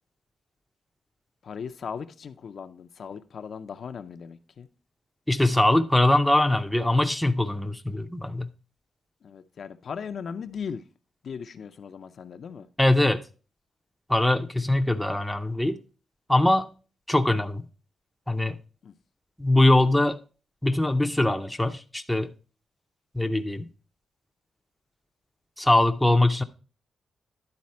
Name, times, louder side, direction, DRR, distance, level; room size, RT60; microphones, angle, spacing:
voice 1, 1.4-4.7 9.2-10.8 11.2-12.7 18.8-18.9, left 6 dB, 55° left, 0.5 m, -38 dB
voice 2, 5.3-8.5 12.8-13.2 14.1-15.8 16.3-16.7 17.1-17.6 18.3-18.6 19.4-20.2 20.6-22.3 23.1-23.7 25.6-26.4, left 1 dB, 5° left, 0.5 m, -22 dB
10.5 x 4.1 x 4.2 m
wide cardioid pair, 130°, 0 cm